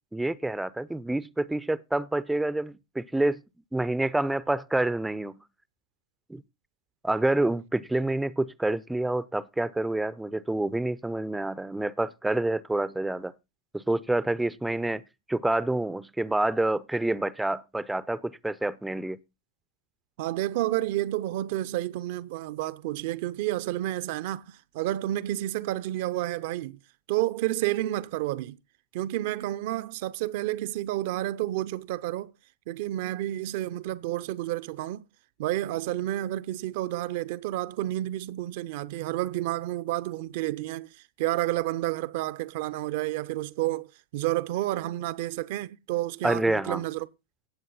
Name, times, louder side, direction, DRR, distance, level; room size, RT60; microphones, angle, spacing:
voice 1, 0.1-3.4 3.7-5.3 6.3-6.4 7.0-13.3 13.7-15.0 15.3-19.2 46.2-46.8, right 2 dB, 5° right, 0.5 m, -28 dB
voice 2, 20.2-26.8 27.1-28.6 28.9-32.3 32.7-35.0 35.4-40.9 41.2-47.1, right 15 dB, 50° right, 0.6 m, -30 dB
16.5 x 7.7 x 3.9 m
figure-of-eight pair, 90°, 0 cm